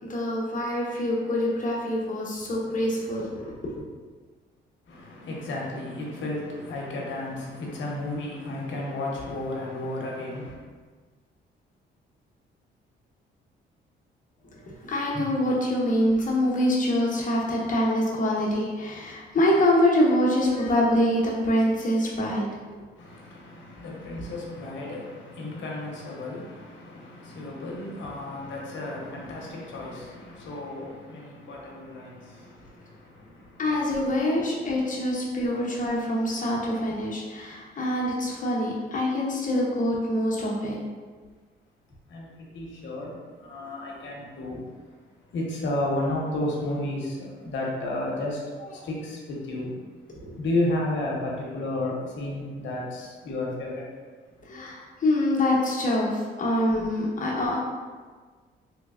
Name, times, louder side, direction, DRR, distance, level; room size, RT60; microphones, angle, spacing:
voice 1, 0.0-3.8 14.8-22.5 33.6-40.8 48.6-48.7 50.1-50.3 54.5-57.6, left 1 dB, 40° left, -4 dB, 0.9 m, -25 dB
voice 2, 4.9-10.5 23.0-32.2 42.1-42.3 42.5-43.1 43.4-44.6 45.3-48.4 48.8-49.7 50.4-53.8, left 1 dB, 70° left, -3 dB, 0.9 m, -32 dB
3.3 x 3.2 x 2.4 m, 1.5 s
cardioid pair, 90°, 20 cm